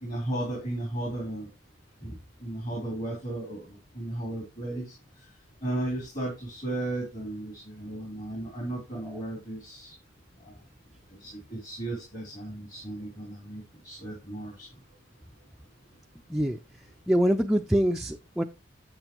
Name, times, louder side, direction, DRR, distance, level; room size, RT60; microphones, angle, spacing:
voice 1, 0.0-1.5 2.0-4.9 5.6-9.9 10.4-10.6 11.2-14.7, right 1 dB, 40° left, 3.3 m, -35 dB
voice 2, 17.1-18.4, equal, ahead, 0.4 m, -24 dB
8.8 x 7.7 x 2.9 m
head